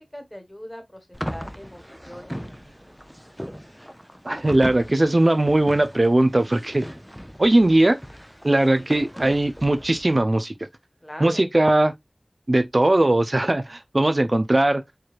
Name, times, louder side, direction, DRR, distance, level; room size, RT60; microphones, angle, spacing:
voice 1, 0.0-3.0 8.8-8.9 11.0-11.4, equal, 15° left, 1.3 m, -42 dB
sound 1, 1.1-10.2, equal, ahead, 0.5 m, -38 dB
voice 2, 4.2-6.9 7.4-8.0 8.4-10.5 11.2-11.9 12.5-14.8, right 1 dB, 55° right, 0.4 m, -19 dB
4.6 x 3.1 x 2.4 m
wide cardioid pair, 45°, 0 cm